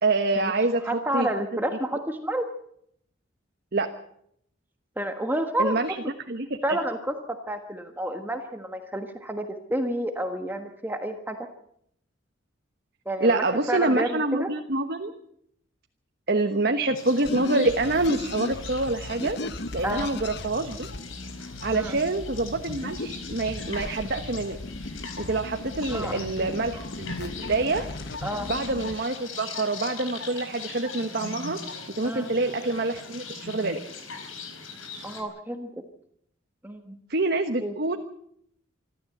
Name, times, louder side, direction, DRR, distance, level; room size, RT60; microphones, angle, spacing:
voice 1, 0.0-0.8 1.1-1.3 3.7-3.9 5.6-6.0 6.3-6.8 13.2-15.1 16.3-19.4 19.7-20.9 21.6-24.6 25.2-27.9 28.4-31.6 31.9-33.8 37.1-38.0, right 2 dB, 50° right, 5 dB, 1.3 m, -26 dB
voice 2, 0.8-2.5 5.0-5.8 6.6-7.1 7.5-11.4 13.0-14.5 19.8-20.1 21.7-22.0 25.9-26.5 28.2-28.5 32.0-32.3 35.0-35.7 36.6-37.0 37.6-37.7, right 1 dB, 10° right, 5 dB, 1.3 m, -30 dB
sound 1, 16.9-35.2, left 4 dB, 90° left, 4.6 m, -41 dB
sound 2, 17.2-28.9, left 2 dB, 55° left, 1.0 m, -36 dB
26.0 x 13.0 x 7.9 m, 0.71 s
head